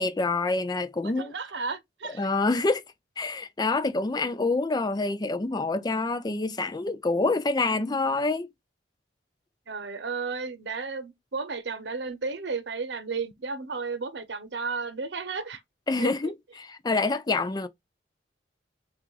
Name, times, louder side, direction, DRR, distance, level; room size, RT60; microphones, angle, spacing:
voice 1, 0.0-1.3 2.2-2.8 3.2-8.5 15.9-17.7, left 3 dB, 25° left, 0.4 m, -27 dB
voice 2, 1.0-2.3 7.7-8.0 9.7-15.6 16.0-16.3, right 4 dB, 70° right, 0.8 m, -33 dB
5.9 x 2.5 x 3.2 m
head